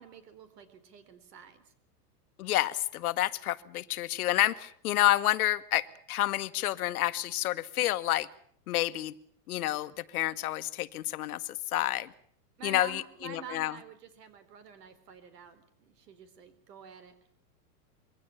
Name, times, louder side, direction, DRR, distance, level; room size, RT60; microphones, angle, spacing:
voice 1, 0.0-1.7 12.6-17.1, right 6 dB, 75° right, 12 dB, 4.4 m, -48 dB
voice 2, 2.4-8.3 8.7-9.1 9.5-11.4 11.7-12.1 12.6-13.7, left 15 dB, 65° left, 14 dB, 1.3 m, -29 dB
23.0 x 16.5 x 8.9 m, 0.64 s
supercardioid pair, 155°, 48 cm